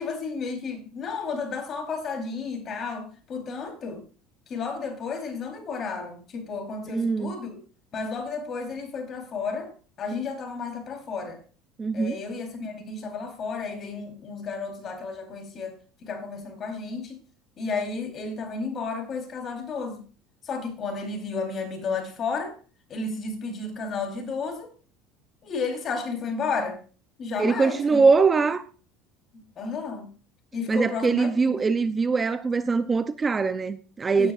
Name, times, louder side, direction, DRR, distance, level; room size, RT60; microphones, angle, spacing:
voice 1, 0.0-4.0 4.5-7.6 7.9-11.4 11.9-17.2 17.6-20.0 20.4-22.6 22.9-24.7 25.4-26.8 27.2-28.0 28.4-28.5 29.3-30.1 30.5-31.6 34.2-34.3, left 4 dB, 40° left, 3.9 m, -32 dB
voice 2, 6.9-7.4 11.8-12.2 27.4-28.6 30.7-34.3, right 4 dB, 25° right, 0.7 m, -22 dB
16.5 x 9.6 x 2.6 m
supercardioid pair, 95°, 0 cm